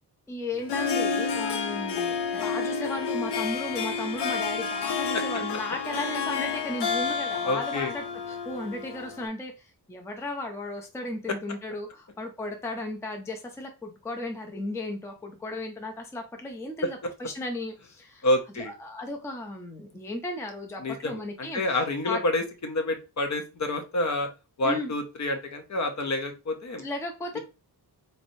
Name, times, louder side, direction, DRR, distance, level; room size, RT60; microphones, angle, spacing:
voice 1, 0.3-18.3 18.6-21.6 22.1-22.2 24.6-24.9 26.8-27.4, left 2 dB, 5° left, 3 dB, 0.4 m, -35 dB
Harp, 0.5-9.3, left 5 dB, 80° left, 0.6 m, -30 dB
voice 2, 7.4-7.9 18.2-18.7 20.8-24.3 24.6-26.8, left 1 dB, 45° left, 6 dB, 0.7 m, -28 dB
4.1 x 3.3 x 2.6 m, 0.30 s
wide cardioid pair, 175°, 40 cm